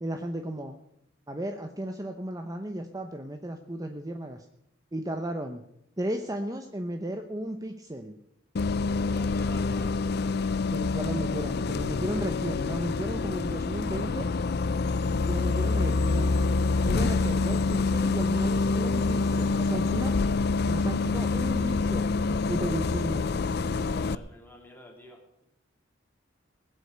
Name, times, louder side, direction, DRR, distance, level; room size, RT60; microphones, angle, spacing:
voice 1, 0.0-0.8 1.3-4.5 4.9-5.6 6.0-8.2 10.7-14.3 15.3-16.4 16.8-20.2 20.7-23.4, right 1 dB, 20° right, 5 dB, 0.9 m, -34 dB
Bus, 8.6-24.2, left 3 dB, 55° left, 0.5 m, -26 dB
voice 2, 9.1-10.0 23.9-25.4, left 1 dB, 10° left, 1 dB, 3.2 m, -49 dB
20.5 x 8.3 x 6.7 m, 0.77 s
head